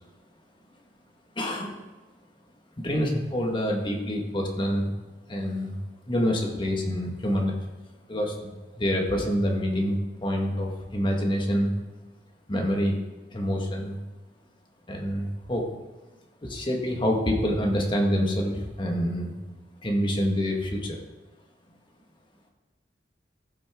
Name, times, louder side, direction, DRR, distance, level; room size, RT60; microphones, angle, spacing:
voice 1, 1.3-1.8 2.8-4.9 5.3-5.8 6.1-7.6 8.1-11.7 12.5-12.9 13.3-14.0 14.9-15.7 16.4-19.3 19.8-21.0, equal, 30° left, 1 dB, 1.6 m, -27 dB
14.5 x 6.3 x 3.7 m, 1.2 s
head